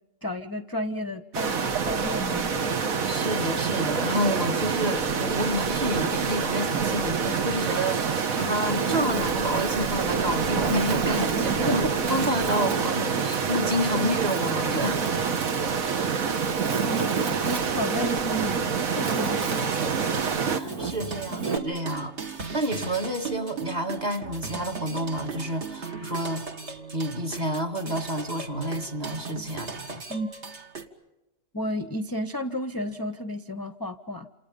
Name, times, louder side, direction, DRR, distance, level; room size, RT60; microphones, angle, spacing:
voice 1, 0.2-2.7 11.6-11.9 14.0-14.1 16.8-17.1 17.4-18.7 19.0-19.7 30.1-30.3 31.5-34.3, equal, 20° left, 0.7 m, -32 dB
sound 1, 1.3-20.6, right 5 dB, 70° right, 1.7 m, -27 dB
Wind, 2.4-5.2 5.7-7.0 7.6-21.6, right 5 dB, 85° right, 2.3 m, -34 dB
voice 2, 3.1-11.8 12.1-15.0 19.2-19.4 20.2-22.2 22.5-26.5 26.9-30.0, equal, 30° right, 2.0 m, -29 dB
sound 2, 19.6-30.9, right 5 dB, 50° right, 1.9 m, -37 dB
29.0 x 28.0 x 5.3 m
omnidirectional pair, 1.5 m